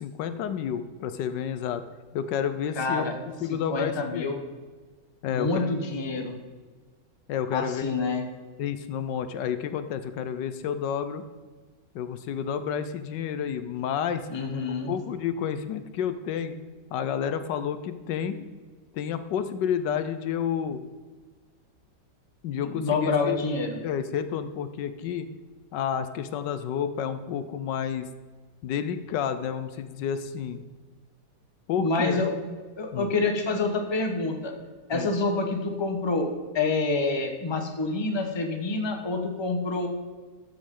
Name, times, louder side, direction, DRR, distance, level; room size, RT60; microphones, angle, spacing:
voice 1, 0.0-1.8 2.1-3.1 3.4-4.4 5.2-5.7 7.3-7.9 8.6-11.2 11.9-14.3 14.9-16.5 16.9-18.5 18.9-20.8 22.4-23.4 23.8-25.3 25.7-28.1 28.6-30.6 31.7-32.2 32.9-33.1 34.9-35.1, left 8 dB, 80° left, 11 dB, 1.3 m, -30 dB
voice 2, 2.8-3.1 3.5-4.4 5.2-6.3 7.5-8.2 14.3-14.9 22.6-23.8 31.8-32.3 32.8-34.5 34.9-36.3 36.5-39.9, left 3 dB, 20° left, 3 dB, 0.9 m, -27 dB
13.0 x 7.4 x 3.8 m, 1.4 s
omnidirectional pair, 1.9 m